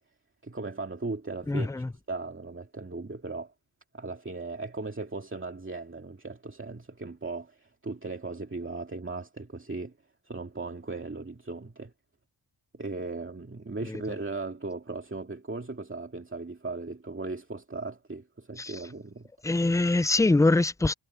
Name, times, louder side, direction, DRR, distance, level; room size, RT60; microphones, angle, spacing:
voice 1, 0.4-3.5 3.9-10.0 10.2-11.9 12.7-19.3, right 3 dB, 25° right, 2.4 m, -37 dB
voice 2, 1.5-1.9 13.9-14.0 18.6-18.8 19.4-20.9, left 2 dB, 5° left, 0.4 m, -24 dB
cardioid pair, 75°, 48 cm